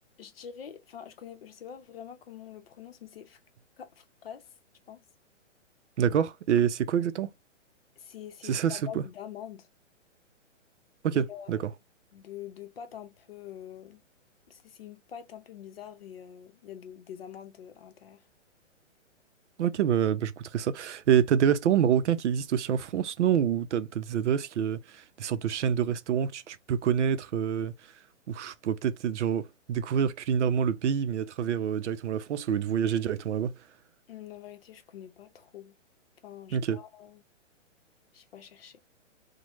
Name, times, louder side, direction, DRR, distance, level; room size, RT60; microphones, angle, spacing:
voice 1, 0.2-3.4 3.8-4.5 4.9-5.0 8.0-9.7 11.1-11.7 12.1-14.0 14.5-18.2 34.1-35.8 36.2-37.2 38.1-38.8, left 9 dB, 50° left, 0.7 m, -45 dB
voice 2, 6.0-7.3 8.4-9.0 11.0-11.6 19.6-27.7 28.3-33.5 36.5-36.8, right 8 dB, 65° right, 0.5 m, -27 dB
3.0 x 2.1 x 3.0 m
hypercardioid pair, 160°, 38 cm